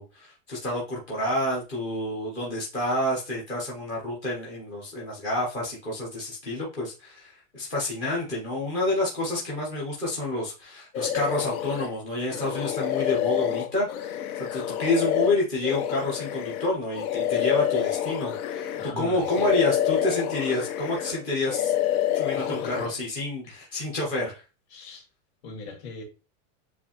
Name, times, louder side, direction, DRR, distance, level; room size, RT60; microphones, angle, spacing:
voice 1, 0.0-21.7 22.1-24.4, left 2 dB, 10° left, 0.3 m, -29 dB
sound 1, 10.9-11.9 12.3-18.9 19.2-21.2 21.4-22.9, left 11 dB, 90° left, 0.7 m, -27 dB
voice 2, 18.8-19.6 22.3-23.0 23.4-23.5 24.7-25.1 25.4-26.0, left 4 dB, 50° left, 1.8 m, -40 dB
7.0 x 2.4 x 2.8 m
supercardioid pair, 165°, 42 cm